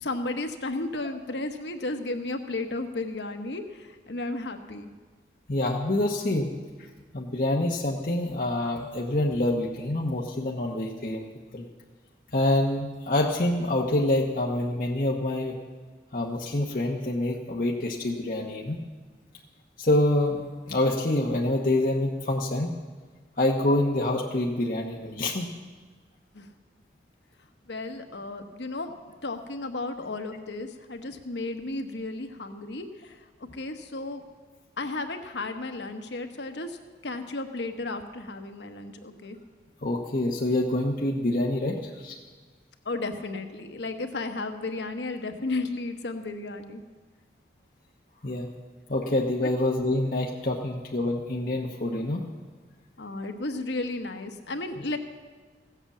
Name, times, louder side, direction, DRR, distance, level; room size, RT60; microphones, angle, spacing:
voice 1, 0.0-4.9 26.3-26.5 27.7-28.9 29.2-33.2 33.5-34.2 34.8-36.8 37.0-39.4 42.8-46.8 49.4-49.5 53.0-55.0, left 2 dB, 85° left, 7 dB, 1.1 m, -33 dB
voice 2, 5.5-6.5 7.1-11.2 11.5-11.6 12.3-15.6 16.1-18.8 19.8-22.7 23.4-25.5 39.8-42.1 48.2-48.5 48.9-52.2, left 1 dB, 50° left, -1 dB, 1.0 m, -26 dB
15.5 x 8.0 x 7.2 m, 1.5 s
head